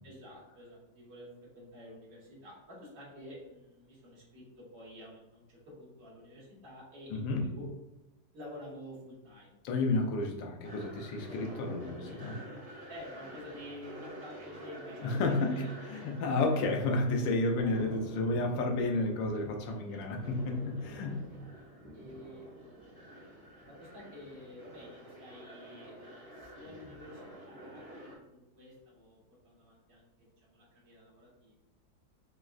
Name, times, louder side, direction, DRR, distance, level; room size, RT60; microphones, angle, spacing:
voice 1, 0.0-7.7 8.3-9.8 11.1-11.3 12.9-16.2 17.4-17.8 19.9-20.3 20.8-21.1 21.9-23.0 23.7-31.5, left 1 dB, 70° right, -6 dB, 1.8 m, -50 dB
voice 2, 7.1-7.5 9.6-12.4 15.0-21.2, left 2 dB, 80° left, 2 dB, 1.3 m, -31 dB
sound 1, 10.6-28.2, equal, 30° right, 0.8 m, -48 dB
4.5 x 2.1 x 2.3 m, 0.95 s
omnidirectional pair, 2.0 m